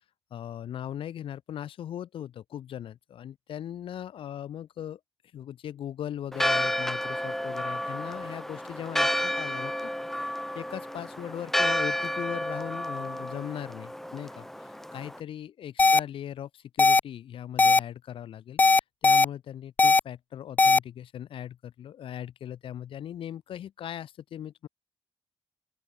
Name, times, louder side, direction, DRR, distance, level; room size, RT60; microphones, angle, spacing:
voice 1, 0.3-5.0 5.3-9.9 10.5-18.6 19.0-24.7, left 10 dB, 90° left, 7.2 m, -39 dB
Church bell, 6.3-15.2, equal, 5° left, 3.7 m, -31 dB
sound 1, 15.8-16.0 16.8-17.0 17.6-17.8 18.6-19.3 19.8-20.0 20.6-20.8, left 3 dB, 20° left, 0.3 m, -18 dB
open air
wide cardioid pair, 130°, 9 cm